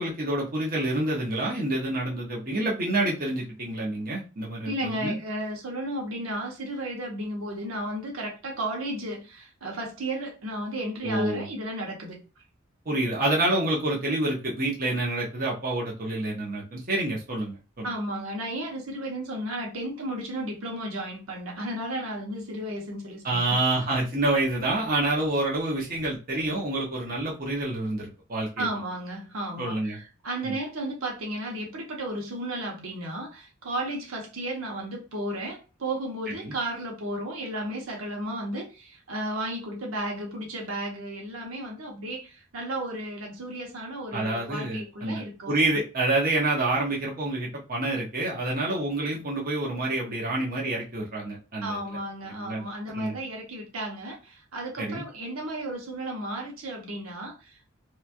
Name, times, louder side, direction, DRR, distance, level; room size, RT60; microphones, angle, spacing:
voice 1, 0.0-5.2 11.0-11.5 12.9-17.9 23.2-28.7 29.6-30.0 30.4-30.5 36.4-36.5 44.1-51.8 52.3-52.6 52.9-53.2 54.8-55.0, right 2 dB, 40° right, 0.7 m, -28 dB
voice 2, 4.6-12.2 17.8-23.6 28.6-45.5 51.6-57.7, right 1 dB, 80° right, 0.8 m, -34 dB
3.0 x 2.2 x 2.5 m
head